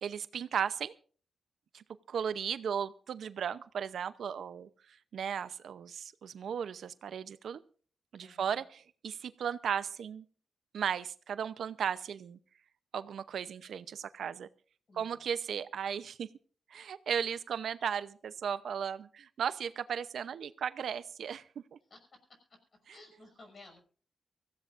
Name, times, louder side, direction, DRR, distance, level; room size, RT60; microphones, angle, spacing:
voice 1, 0.0-0.9 1.7-7.6 8.1-10.2 10.7-12.4 12.9-14.5 14.9-16.3 16.7-21.8, right 8 dB, 80° right, 14 dB, 0.7 m, -36 dB
voice 2, 8.2-8.7 14.9-15.3 21.9-22.6 22.9-23.8, left 2 dB, 45° left, 5 dB, 6.0 m, -56 dB
24.0 x 15.5 x 2.6 m, 0.42 s
wide cardioid pair, 130°, 0 cm